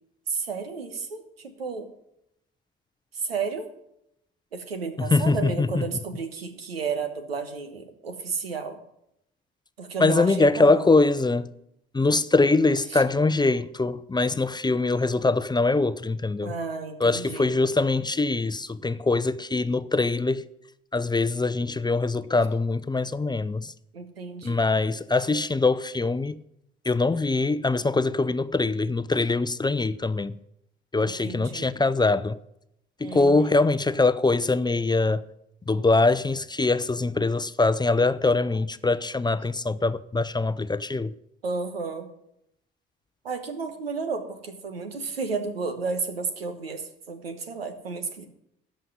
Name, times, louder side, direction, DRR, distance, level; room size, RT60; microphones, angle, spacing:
voice 1, 0.3-1.9 3.1-3.7 4.5-8.8 9.8-10.8 12.9-13.0 16.4-17.5 23.9-24.7 30.9-31.7 33.0-33.5 41.4-42.1 43.2-46.8 47.1-48.3, right 4 dB, 90° right, 1.2 m, -32 dB
voice 2, 5.0-6.0 10.0-11.5 11.9-16.5 17.0-20.4 20.9-23.7 24.4-26.4 26.8-30.3 30.9-32.4 33.0-35.3 35.7-41.1, left 3 dB, 15° left, 0.6 m, -23 dB
13.5 x 5.6 x 9.5 m
figure-of-eight pair, 50°, 29 cm